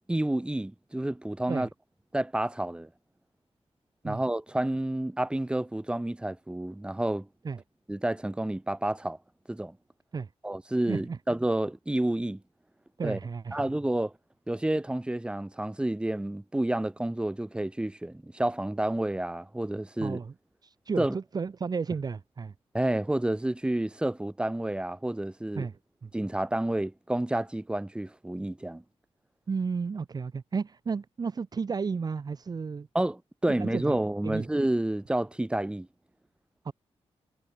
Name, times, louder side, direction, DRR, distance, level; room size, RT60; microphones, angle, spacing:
voice 1, 0.1-1.7 2.1-2.9 4.0-7.3 7.9-9.2 9.5-9.8 10.4-12.4 13.0-13.2 13.5-14.1 14.5-20.2 21.0-21.2 22.7-25.7 26.1-28.8 32.9-35.9, right 1 dB, 10° right, 3.1 m, -29 dB
voice 2, 10.9-11.2 13.0-13.6 20.0-20.3 20.6-22.5 25.5-26.1 29.5-32.9 33.6-34.0 34.2-34.5 36.6-36.7, right 5 dB, 40° right, 1.4 m, -33 dB
wide cardioid pair, 145°, 11 cm